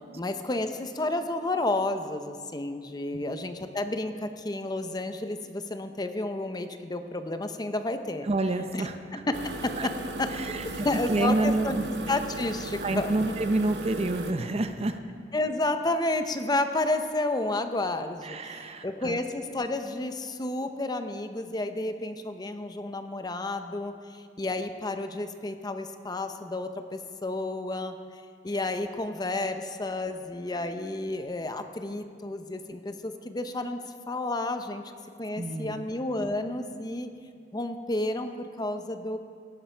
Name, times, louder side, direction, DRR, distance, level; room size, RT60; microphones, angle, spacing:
voice 1, 0.2-8.3 8.7-8.8 9.1-9.9 10.2-11.8 12.1-13.1 15.3-27.9 28.4-33.8 34.1-34.8 35.2-37.1 37.5-39.2, left 2 dB, 25° left, 8 dB, 0.7 m, -31 dB
voice 2, 8.2-9.2 9.8-9.9 10.3-11.9 12.8-15.0 18.2-19.2 35.4-35.9, right 2 dB, 35° right, 8 dB, 0.6 m, -28 dB
sound 1, 9.3-14.3, right 2 dB, 70° right, 1.0 m, -37 dB
17.5 x 12.0 x 4.5 m, 2.2 s
head